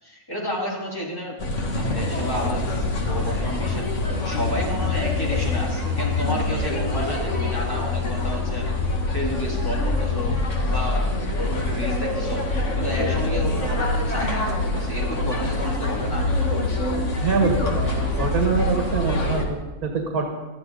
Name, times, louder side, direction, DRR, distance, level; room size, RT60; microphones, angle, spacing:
voice 1, 0.0-8.6 9.1-10.4 10.7-11.1 11.5-12.4 12.7-16.2, equal, 15° left, -3 dB, 3.5 m, -31 dB
sound 1, 1.4-19.5, left 2 dB, 55° left, 2.2 m, -25 dB
voice 2, 17.2-20.3, right 4 dB, 90° right, 1 dB, 2.3 m, -24 dB
20.0 x 13.0 x 4.0 m, 1.2 s
omnidirectional pair, 1.5 m